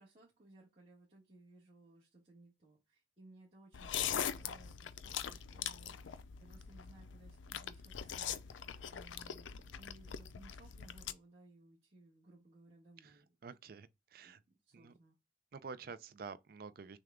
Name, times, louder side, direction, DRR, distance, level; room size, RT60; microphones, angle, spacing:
voice 1, 0.0-13.4 14.2-15.2, right 2 dB, 30° right, 1.4 m, -61 dB
sound 1, 3.7-11.1, left 9 dB, 85° left, 0.4 m, -42 dB
voice 2, 13.4-14.4 14.7-14.9 15.5-17.0, right 5 dB, 55° right, 0.4 m, -49 dB
6.3 x 2.3 x 3.6 m
head